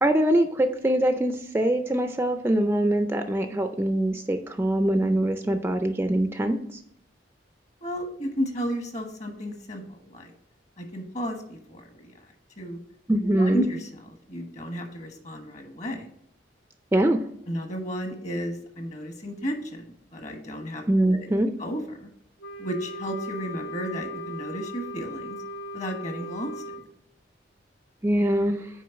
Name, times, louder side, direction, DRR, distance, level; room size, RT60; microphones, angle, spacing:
voice 1, 0.0-6.8 13.1-13.7 16.9-17.2 20.9-21.5 28.0-28.7, right 1 dB, 15° right, 6 dB, 0.4 m, -23 dB
voice 2, 7.8-10.3 10.8-12.3 12.6-12.8 13.2-16.1 17.5-21.2 21.6-22.1 22.6-25.4 25.7-26.8, equal, 40° left, 4 dB, 1.2 m, -33 dB
Wind instrument woodwind instrument, 22.4-26.9, equal, 75° left, 1.0 m, -37 dB
6.2 x 4.7 x 5.8 m, 0.71 s
head